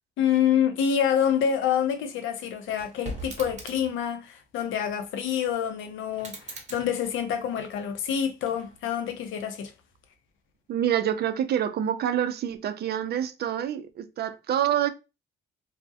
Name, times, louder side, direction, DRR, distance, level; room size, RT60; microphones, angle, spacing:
voice 1, 0.2-9.7, left 8 dB, 80° left, 0.5 m, -27 dB
sound 1, 2.6-4.0 6.1-7.9 8.4-9.1, right 2 dB, 35° right, 0.8 m, -42 dB
voice 2, 10.7-14.9, right 10 dB, 55° right, 0.4 m, -27 dB
2.3 x 2.0 x 2.6 m
cardioid pair, 90°, 20 cm